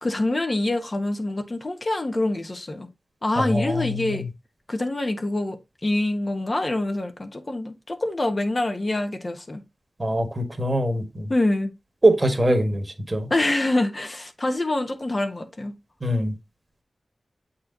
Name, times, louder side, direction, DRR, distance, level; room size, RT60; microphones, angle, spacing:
voice 1, 0.0-2.9 3.2-4.2 4.7-9.6 11.3-11.7 13.3-15.7, left 2 dB, 40° left, 1.2 m, -25 dB
voice 2, 3.4-4.2 10.0-11.3 12.0-12.8 13.1-13.3 16.0-16.3, right 1 dB, 30° right, 1.7 m, -22 dB
7.7 x 4.2 x 3.9 m
wide cardioid pair, 60°, 0 cm